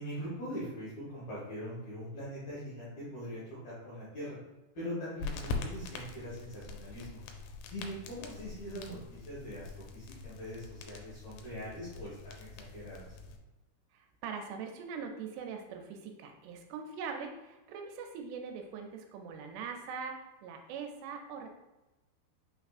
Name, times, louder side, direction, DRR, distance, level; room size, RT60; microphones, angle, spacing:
voice 1, 0.0-4.4 4.7-7.2 7.7-13.1, equal, 65° left, -9 dB, 1.9 m, -42 dB
sound 1, 5.2-13.4, left 3 dB, 85° left, 2.8 m, -43 dB
voice 2, 13.9-21.5, right 5 dB, 85° right, 4 dB, 2.5 m, -42 dB
5.9 x 3.4 x 2.4 m, 1.0 s
omnidirectional pair, 4.9 m